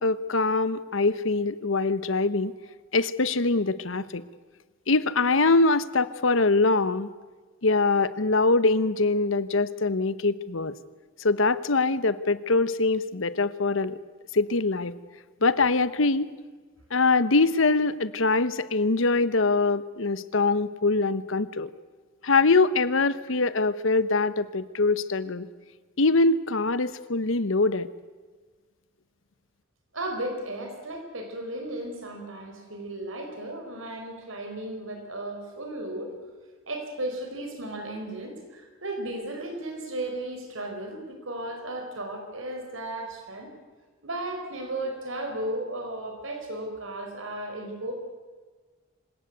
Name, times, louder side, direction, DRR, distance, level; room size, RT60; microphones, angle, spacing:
voice 1, 0.0-2.5 2.9-4.2 4.9-7.1 7.6-10.7 11.2-14.0 14.3-14.9 15.4-16.3 16.9-21.7 22.2-25.5 26.0-27.9, left 3 dB, 75° left, 15 dB, 1.0 m, -23 dB
voice 2, 29.9-36.1 36.7-43.5 44.0-47.9, right 1 dB, 85° right, 4 dB, 4.7 m, -35 dB
26.5 x 17.0 x 8.2 m, 1.4 s
head